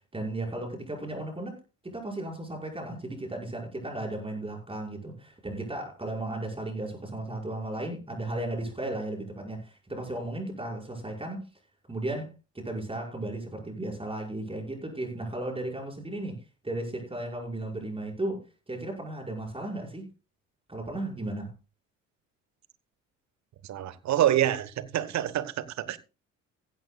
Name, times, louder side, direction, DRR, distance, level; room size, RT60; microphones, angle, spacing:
voice 1, 0.1-1.6 1.9-11.5 11.9-16.4 16.6-18.4 18.7-20.1 20.7-21.5, right 1 dB, 15° right, 5.7 m, -35 dB
voice 2, 23.6-26.0, right 12 dB, 45° right, 1.2 m, -27 dB
15.5 x 13.0 x 2.3 m
figure-of-eight pair, 50°, 38 cm